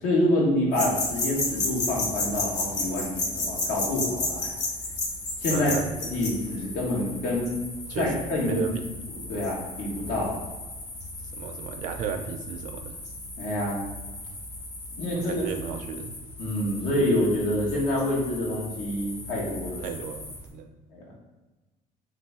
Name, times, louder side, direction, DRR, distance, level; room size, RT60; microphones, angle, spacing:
voice 1, 0.0-4.5 5.4-5.7 6.0-7.5 7.9-8.7 9.1-10.4 13.4-13.8 15.0-15.4 16.4-19.9 20.9-21.0, left 1 dB, 85° left, -3 dB, 1.3 m, -27 dB
sound 1, 0.7-20.5, left 2 dB, 55° left, 1.0 m, -34 dB
voice 2, 5.5-5.9 7.9-8.1 8.4-8.8 11.3-13.0 15.1-16.2 19.8-20.7, right 7 dB, 65° right, 6 dB, 0.5 m, -34 dB
4.0 x 2.7 x 3.4 m, 1.1 s
cardioid pair, 130°, 14 cm